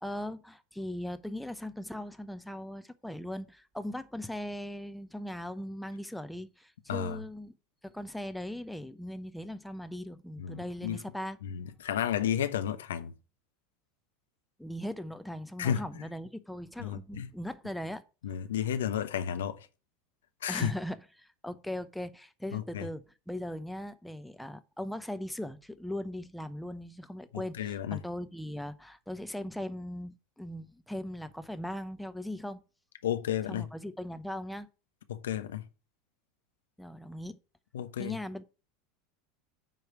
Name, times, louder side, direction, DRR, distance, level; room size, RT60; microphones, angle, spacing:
voice 1, 0.0-7.5 7.8-11.4 14.6-18.0 20.5-32.6 33.5-34.7 36.8-37.4 38.0-38.4, left 1 dB, ahead, 0.7 m, -39 dB
voice 2, 10.4-11.0 11.5-13.1 15.6-15.8 16.8-17.3 18.2-19.6 20.4-20.7 22.5-22.9 27.3-28.0 33.0-33.7 35.1-35.6 37.7-38.1, left 9 dB, 85° left, 0.9 m, -32 dB
9.2 x 3.3 x 6.8 m
hypercardioid pair, 100°, 0 cm